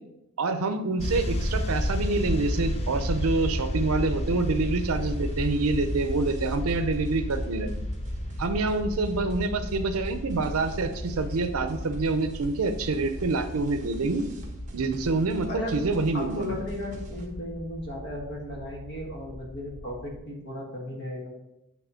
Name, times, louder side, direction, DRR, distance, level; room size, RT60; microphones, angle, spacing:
voice 1, 0.4-7.7 8.4-14.2 14.7-16.5, right 3 dB, 75° right, 8 dB, 0.6 m, -27 dB
sound 1, 1.0-20.2, equal, 30° left, 0.7 m, -33 dB
sound 2, 4.0-17.3, right 1 dB, 35° right, 1.3 m, -48 dB
voice 2, 15.5-15.8 16.1-21.3, left 1 dB, 55° left, -1 dB, 1.7 m, -35 dB
8.4 x 3.5 x 5.6 m, 0.89 s
head